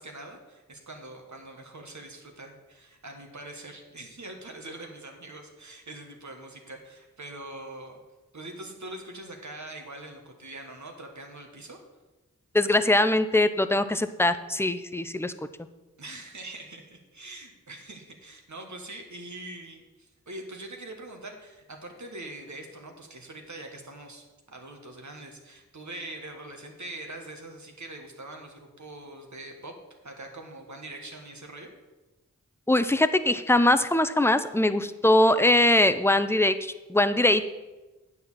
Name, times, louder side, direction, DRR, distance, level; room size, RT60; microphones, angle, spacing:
voice 1, 0.0-8.0 8.3-11.8 16.0-29.8 30.0-31.7, right 2 dB, 60° right, 3 dB, 1.5 m, -43 dB
voice 2, 12.5-15.3 32.7-37.5, left 1 dB, 10° left, 11 dB, 0.5 m, -22 dB
9.3 x 4.3 x 7.4 m, 1.1 s
cardioid pair, 40°, 32 cm